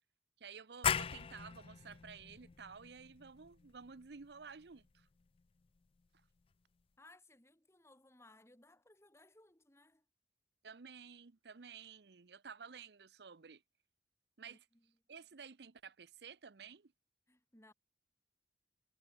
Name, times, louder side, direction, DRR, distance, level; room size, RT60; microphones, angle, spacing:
voice 1, 0.4-5.1 10.6-13.6 14.4-14.6 15.1-16.9, right 6 dB, 70° right, 0.7 m, -53 dB
sound 1, 0.8-6.2, left 7 dB, 30° left, 0.4 m, -41 dB
voice 2, 7.0-10.0 14.4-15.0 17.3-17.7, left 2 dB, 15° left, 3.0 m, -64 dB
head